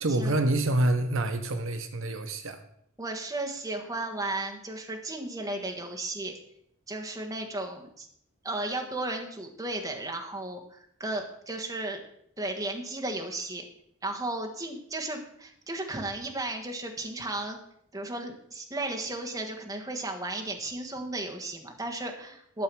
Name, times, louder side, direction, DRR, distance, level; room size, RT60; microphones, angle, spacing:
voice 1, 0.0-2.6, right 1 dB, 65° right, 8 dB, 1.0 m, -27 dB
voice 2, 3.0-6.3 6.9-8.1 8.4-12.0 12.4-13.6 14.0-17.6 17.9-22.6, right 2 dB, 15° right, 2 dB, 1.4 m, -34 dB
12.0 x 6.9 x 6.1 m, 0.71 s
head